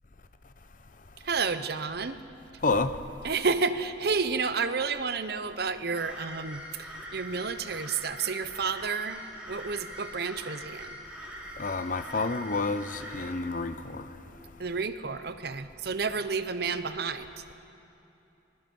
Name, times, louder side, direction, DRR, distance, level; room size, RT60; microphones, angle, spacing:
voice 1, 1.2-2.2 3.2-11.0 14.6-17.5, right 5 dB, 55° right, 0.8 m, -31 dB
voice 2, 2.6-2.9 11.6-14.1, left 3 dB, 45° left, 0.7 m, -29 dB
sound 1, 6.0-13.3, equal, 5° right, 2.8 m, -43 dB
24.5 x 21.0 x 5.4 m
head